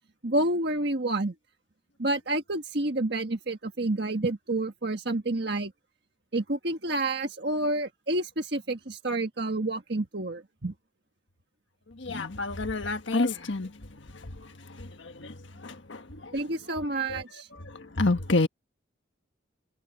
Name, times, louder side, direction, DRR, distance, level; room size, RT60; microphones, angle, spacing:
voice 1, 0.2-1.3 2.0-5.7 6.3-10.7 16.3-17.5, right 2 dB, 55° right, 1.6 m, -29 dB
voice 2, 12.0-13.7 14.8-15.3 15.6-16.4 17.1-17.2 17.7-18.5, left 2 dB, 70° left, 1.5 m, -28 dB
head